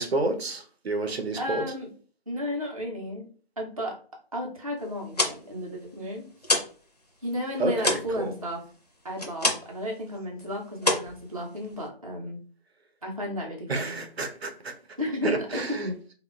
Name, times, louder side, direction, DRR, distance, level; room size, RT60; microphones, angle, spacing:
voice 1, 0.0-1.7 7.6-8.3 13.7-14.7 15.2-15.9, right 2 dB, 85° right, 0.7 m, -29 dB
voice 2, 1.4-1.9 2.3-3.3 3.6-3.9 4.3-6.3 7.2-8.6 9.0-12.4 13.0-14.0 15.0-15.8, equal, 35° right, 0.5 m, -33 dB
sound 1, 4.9-6.8 7.1-9.8 10.1-10.5 10.8-11.9, left 1 dB, 40° left, 0.4 m, -28 dB
2.9 x 2.1 x 2.3 m
figure-of-eight pair, 170°, 31 cm